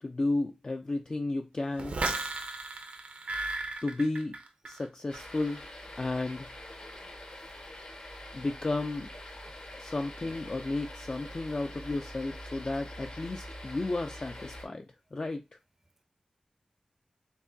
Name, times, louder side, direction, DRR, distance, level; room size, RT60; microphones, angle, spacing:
voice 1, 0.0-2.0 3.8-4.4 4.7-5.7 6.0-6.5 8.3-9.1 9.8-14.9 15.1-15.4, left 2 dB, 45° left, 0.4 m, -33 dB
sound 1, 1.8-4.8 5.1-5.6, right 2 dB, 85° right, 0.7 m, -35 dB
sound 2, 5.1-14.7, left 1 dB, 65° left, 1.4 m, -45 dB
voice 2, 6.6-7.4 9.4-9.6, right 1 dB, 20° right, 0.5 m, -59 dB
4.6 x 2.9 x 2.7 m
wide cardioid pair, 80°, 2 cm